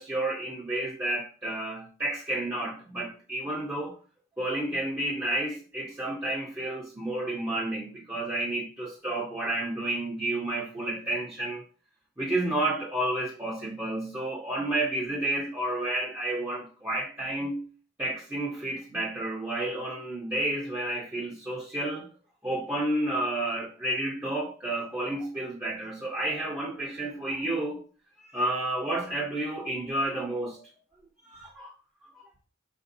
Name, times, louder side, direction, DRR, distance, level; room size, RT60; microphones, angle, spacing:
voice 1, 0.0-3.9 4.4-11.6 12.2-17.6 18.0-22.1 22.4-27.8 28.3-30.7 31.3-31.7 32.1-32.2, right 1 dB, 10° right, 0.6 m, -31 dB
4.4 x 2.6 x 2.6 m
head